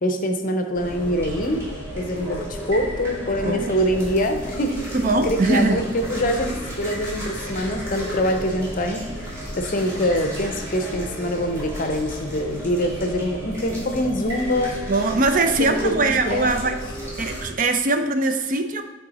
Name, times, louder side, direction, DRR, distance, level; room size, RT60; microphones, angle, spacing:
voice 1, 0.0-1.6 2.0-5.0 5.2-9.0 9.6-14.8 15.6-16.8, equal, 45° left, 6 dB, 0.6 m, -24 dB
sound 1, 0.7-17.5, equal, 15° right, 2.3 m, -33 dB
voice 2, 3.4-3.8 4.9-5.8 14.9-16.8 17.2-18.8, right 3 dB, 45° right, 7 dB, 0.5 m, -21 dB
8.4 x 3.7 x 4.1 m, 1.2 s
head